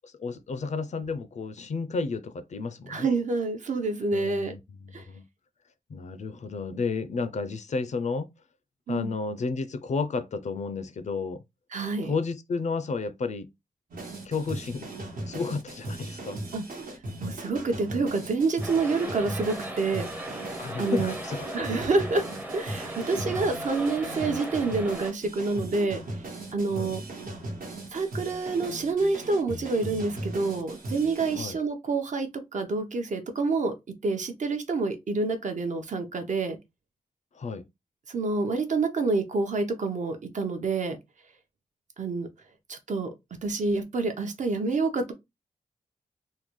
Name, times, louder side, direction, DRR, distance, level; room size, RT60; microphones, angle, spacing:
voice 1, 0.0-3.1 4.1-5.2 5.9-8.3 8.9-11.4 12.0-13.5 14.2-14.9 15.3-16.4 20.6-21.7 26.7-26.9 31.3-31.6 37.3-37.7, left 4 dB, 50° left, 0.4 m, -32 dB
voice 2, 2.9-4.5 4.9-5.0 8.9-9.1 11.7-12.1 16.5-16.6 17.2-20.1 20.8-21.1 21.5-22.2 22.5-26.0 26.5-27.0 27.9-33.7 34.0-36.6 38.1-41.0 42.0-42.3 42.7-43.1 43.4-45.1, right 3 dB, 55° right, 0.7 m, -27 dB
sound 1, 13.9-31.4, right 1 dB, 75° right, 1.1 m, -38 dB
Large crowd close, 18.6-25.1, right 1 dB, 10° right, 0.6 m, -37 dB
3.7 x 2.2 x 3.0 m
wide cardioid pair, 180°, 15 cm